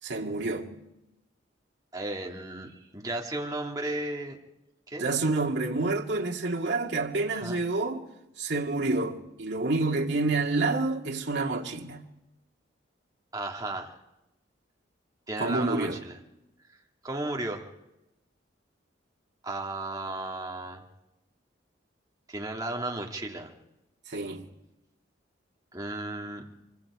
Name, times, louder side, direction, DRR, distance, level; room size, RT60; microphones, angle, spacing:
voice 1, 0.0-0.7 5.0-8.1 8.4-12.1 15.4-16.0 24.1-24.4, right 3 dB, 65° right, 2.2 m, -28 dB
voice 2, 1.9-4.4 4.9-5.1 7.3-7.6 13.3-14.0 15.3-16.2 17.0-17.7 19.4-20.8 22.3-23.5 25.7-26.4, right 2 dB, 20° right, 2.2 m, -34 dB
24.5 x 24.5 x 4.9 m
head